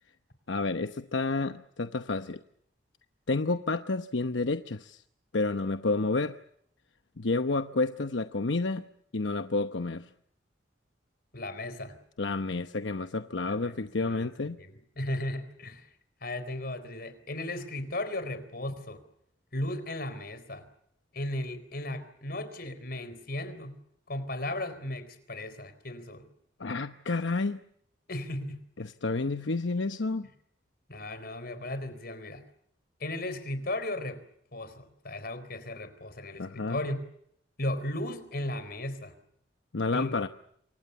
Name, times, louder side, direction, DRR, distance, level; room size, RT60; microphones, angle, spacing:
voice 1, 0.5-2.4 3.3-5.0 5.3-6.4 7.2-8.8 9.1-10.1 12.2-14.6 26.6-27.6 28.8-30.3 36.4-36.8 39.7-40.3, left 3 dB, 85° left, 9 dB, 0.9 m, -30 dB
voice 2, 11.3-12.0 13.5-14.3 14.6-15.9 16.2-19.0 19.5-20.6 21.1-23.8 24.1-26.3 28.1-28.6 30.9-32.4 33.0-34.2 34.5-37.0 37.6-39.1 39.9-40.2, left 1 dB, 55° left, 13 dB, 4.1 m, -36 dB
28.5 x 24.0 x 7.0 m, 0.71 s
head